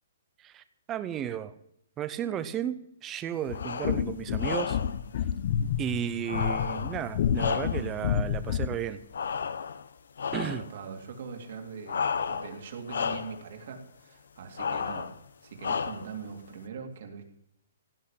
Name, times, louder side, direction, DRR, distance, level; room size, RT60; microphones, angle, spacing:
voice 1, 0.4-1.5 2.0-4.8 5.8-9.0 10.3-10.6, right 10 dB, 10° right, 12 dB, 0.6 m, -34 dB
sound 1, 3.5-4.0 4.4-5.0 6.3-8.0 9.1-9.9 10.2-10.7 11.9-12.6 12.9-13.4 14.6-15.2 15.6-16.2, left 6 dB, 75° left, 0.9 m, -32 dB
sound 2, 3.5-8.9, left 8 dB, 35° left, 0.6 m, -30 dB
voice 2, 10.3-15.1 15.4-17.2, right 6 dB, 45° right, 3 dB, 2.4 m, -42 dB
16.5 x 6.4 x 10.0 m, 0.76 s
hypercardioid pair, 180°, 0 cm